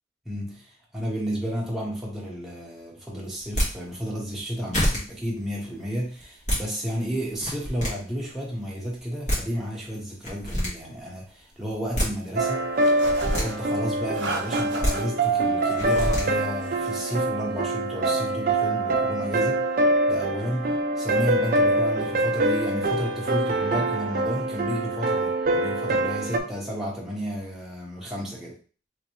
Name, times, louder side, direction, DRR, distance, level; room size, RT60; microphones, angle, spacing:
voice 1, 0.2-12.7 13.3-19.6 20.1-28.6, equal, ahead, -4 dB, 1.0 m, -32 dB
sound 1, 3.4-3.7 4.4-4.5 4.7-5.0 6.2-6.6 7.3-7.9 9.0-9.1 9.3-9.4 10.2-10.7 11.7-12.1 13.0-13.4 14.6-14.9 15.8-16.2, equal, 40° left, 1.5 m, -25 dB
sound 2, 12.4-26.4, right 2 dB, 50° right, 0.5 m, -25 dB
sound 3, 12.8-13.6 14.2-15.0 15.7-16.3 16.6-17.2, right 2 dB, 90° right, 0.8 m, -36 dB
3.4 x 3.0 x 3.0 m, 0.39 s
head